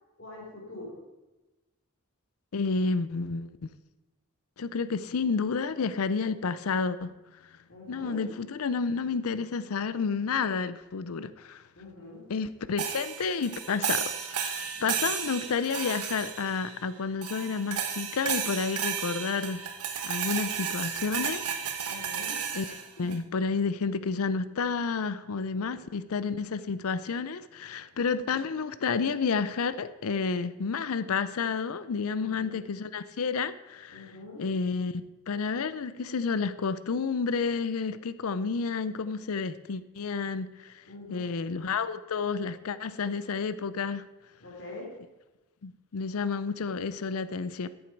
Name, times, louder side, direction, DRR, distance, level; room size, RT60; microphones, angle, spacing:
voice 1, 0.2-1.0 7.7-8.2 11.8-12.3 14.7-15.1 21.9-22.4 25.5-26.0 32.2-32.7 33.9-34.5 40.9-41.3 44.4-44.9, left 2 dB, 55° left, -3 dB, 2.9 m, -44 dB
voice 2, 2.5-3.6 4.6-7.1 7.9-11.6 12.3-19.6 20.0-21.4 22.5-22.6 23.0-34.1 34.4-40.7 41.1-44.1 45.6-47.7, left 5 dB, 80° left, 15 dB, 0.5 m, -30 dB
sound 1, 12.8-16.8 17.2-23.2, right 8 dB, 90° right, 1.1 m, -33 dB
13.5 x 7.3 x 4.6 m, 1.1 s
head